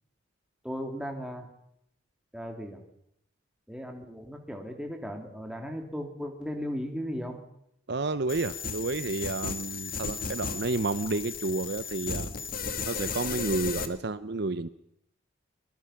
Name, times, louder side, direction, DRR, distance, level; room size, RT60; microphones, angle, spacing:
voice 1, 0.6-1.5 2.3-2.8 3.7-7.4, equal, 5° right, 3 dB, 3.0 m, -36 dB
voice 2, 7.9-12.3 12.9-14.7, right 3 dB, 55° right, 14 dB, 0.7 m, -30 dB
sound 1, 8.3-13.9, left 5 dB, 45° left, 1.8 m, -35 dB
24.0 x 21.5 x 5.9 m, 0.75 s
head